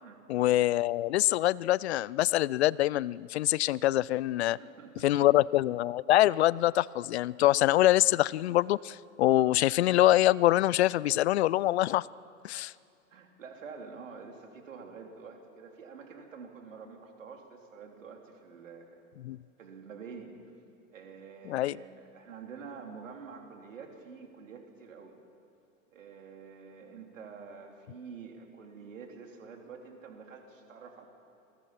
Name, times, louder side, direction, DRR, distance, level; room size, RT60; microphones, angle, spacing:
voice 1, 0.3-4.6 5.0-12.1 12.4-12.7 19.2-19.4 21.5-21.8, left 15 dB, 55° left, 22 dB, 0.5 m, -25 dB
voice 2, 4.4-5.3 13.1-19.0 19.6-20.4 20.9-25.1 25.9-31.1, right 5 dB, 70° right, 3 dB, 3.3 m, -47 dB
27.0 x 20.0 x 5.8 m, 2.5 s
figure-of-eight pair, 90°, 40 cm